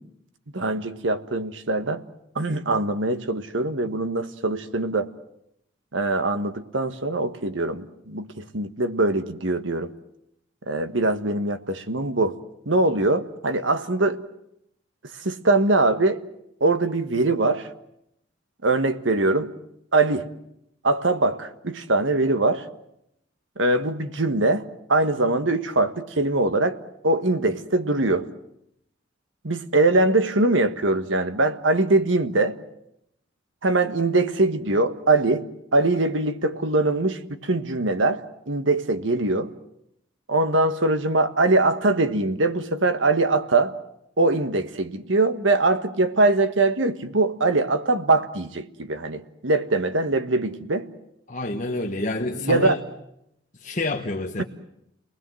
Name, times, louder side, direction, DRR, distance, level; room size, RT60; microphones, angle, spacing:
voice 1, 0.5-2.0 2.3-5.1 5.9-9.9 10.7-12.4 12.6-14.2 15.2-16.2 16.6-17.7 18.6-19.5 19.9-20.3 20.8-22.7 23.6-26.8 27.0-28.3 29.4-32.6 33.6-39.5 40.3-43.7 44.2-50.9 52.4-52.7, right 2 dB, 75° right, 1.5 m, -22 dB
voice 2, 51.3-52.8 53.6-54.4, left 2 dB, 40° left, 1.3 m, -28 dB
29.5 x 20.5 x 7.8 m
head